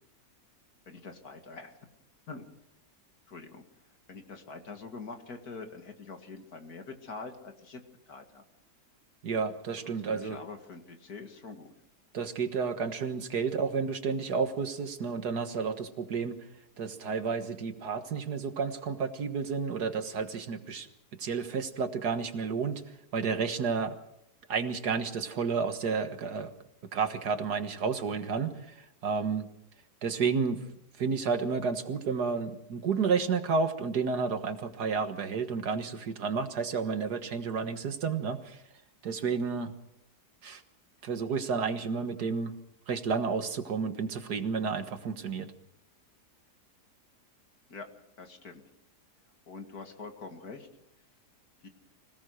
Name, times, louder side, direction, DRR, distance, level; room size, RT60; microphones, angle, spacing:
voice 1, 0.9-1.8 2.3-2.5 3.3-3.6 4.1-8.4 9.8-11.7 47.7-47.9 48.2-48.6 49.5-50.7 51.6-51.7, left 4 dB, 60° left, 5 dB, 2.6 m, -44 dB
voice 2, 9.2-10.4 12.1-16.4 16.8-20.9 21.2-22.8 23.1-24.0 24.5-26.5 26.9-28.6 29.0-29.5 30.0-30.6 31.0-38.6 39.0-39.7 40.4-40.6 41.0-42.5 42.9-45.5, right 5 dB, 70° right, 8 dB, 2.0 m, -31 dB
25.5 x 17.5 x 6.4 m, 0.83 s
omnidirectional pair, 1.8 m